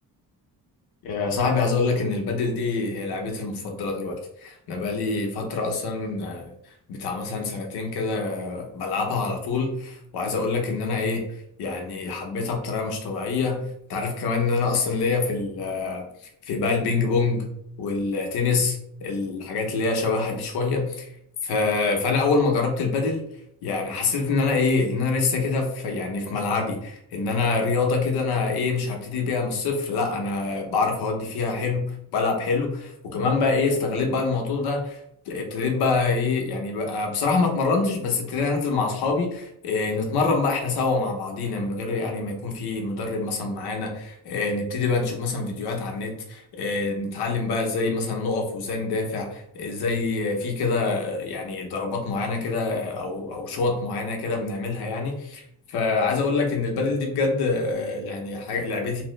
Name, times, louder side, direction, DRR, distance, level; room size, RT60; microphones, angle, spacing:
voice 1, 1.0-6.5 6.9-11.2 11.6-16.0 16.5-17.5 17.8-21.1 21.4-23.2 23.6-35.0 35.3-59.0, left 4 dB, 85° left, 2 dB, 0.9 m, -26 dB
3.1 x 2.0 x 3.1 m, 0.72 s
cardioid pair, 140°, 37 cm